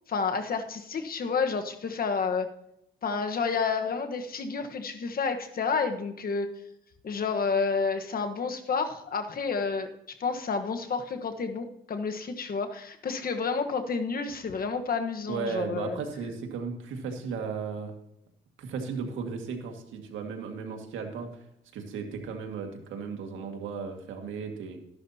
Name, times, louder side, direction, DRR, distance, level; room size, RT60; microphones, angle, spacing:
voice 1, 0.1-2.5 3.0-6.5 7.0-9.9 10.2-16.0, left 5 dB, 50° left, 6 dB, 1.3 m, -30 dB
voice 2, 15.3-17.9 18.6-21.3 21.7-24.8, right 5 dB, 80° right, 3 dB, 1.9 m, -35 dB
13.5 x 11.0 x 2.8 m, 0.77 s
cardioid pair, 90°, 20 cm